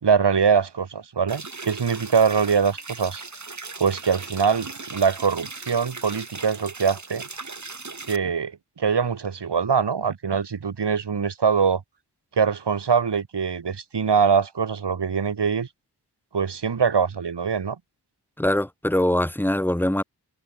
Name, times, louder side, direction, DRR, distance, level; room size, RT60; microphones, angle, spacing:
voice 1, 0.0-3.2 3.8-7.2 8.1-11.8 12.4-15.7 16.3-17.8, right 6 dB, 85° right, 2.2 m, -23 dB
sound 1, 1.3-8.2, right 3 dB, 45° right, 3.0 m, -38 dB
voice 2, 18.4-20.0, left 1 dB, 5° left, 1.4 m, -22 dB
wide cardioid pair, 80°, 40 cm